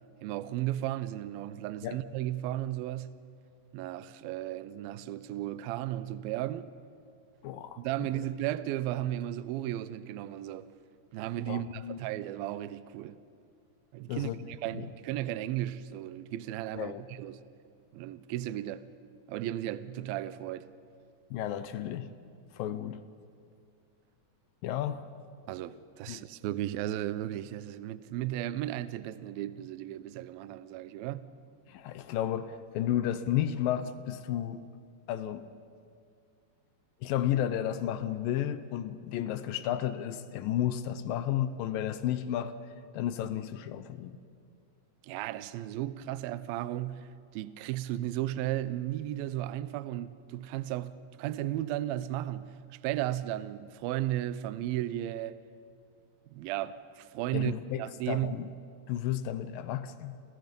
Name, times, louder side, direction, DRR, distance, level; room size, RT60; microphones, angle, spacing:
voice 1, 0.2-3.2 3.7-6.7 7.8-10.7 11.1-13.2 13.9-17.4 17.9-18.9 19.3-20.7 25.5-31.3 45.0-52.5 52.8-55.4 56.3-58.3, right 13 dB, 80° right, 2.3 m, -35 dB
voice 2, 7.4-8.1 11.5-12.0 14.1-14.4 14.7-14.9 16.7-17.0 21.3-22.1 22.5-23.0 24.6-25.0 26.1-26.2 31.7-34.7 35.1-35.5 37.0-42.5 42.9-44.2 57.3-58.5 58.9-60.2, left 11 dB, 75° left, 2.2 m, -32 dB
29.5 x 28.5 x 5.3 m
omnidirectional pair, 4.8 m